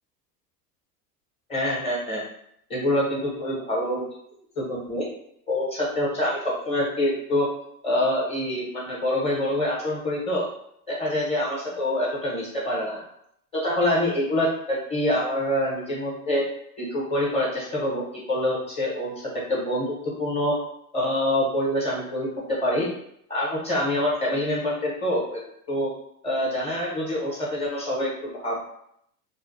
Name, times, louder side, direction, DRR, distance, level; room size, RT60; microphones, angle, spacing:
voice 1, 1.5-2.2 2.7-4.0 4.6-5.1 5.5-7.5 7.8-10.5 10.9-13.0 13.5-16.4 16.8-18.0 18.3-20.6 20.9-22.9 23.3-25.4 25.7-25.9 26.2-28.5, left 1 dB, 15° left, -5 dB, 0.9 m, -26 dB
2.4 x 2.2 x 2.6 m, 0.72 s
hypercardioid pair, 110°, 47 cm